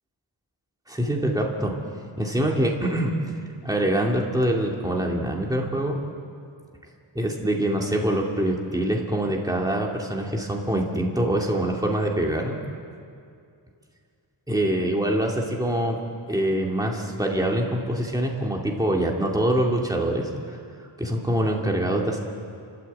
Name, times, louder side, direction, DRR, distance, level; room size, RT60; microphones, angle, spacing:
voice 1, 0.9-1.7 2.2-3.1 3.6-5.9 7.2-12.6 14.5-16.0 16.3-20.3 21.0-22.2, right 1 dB, 10° right, -1 dB, 2.5 m, -24 dB
29.0 x 13.0 x 8.5 m, 2.4 s
wide cardioid pair, 65°, 46 cm